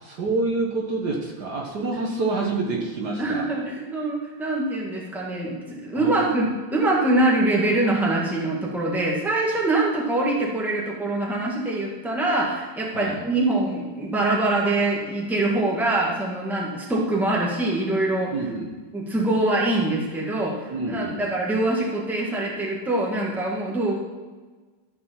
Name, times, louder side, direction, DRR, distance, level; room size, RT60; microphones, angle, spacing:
voice 1, 0.0-3.5 5.9-6.3 12.9-13.2 18.3-18.7 20.7-21.2, right 3 dB, 60° right, -1 dB, 1.7 m, -27 dB
voice 2, 3.2-18.3 18.9-23.9, right 2 dB, ahead, -4 dB, 1.6 m, -24 dB
13.0 x 5.1 x 5.7 m, 1.3 s
omnidirectional pair, 2.2 m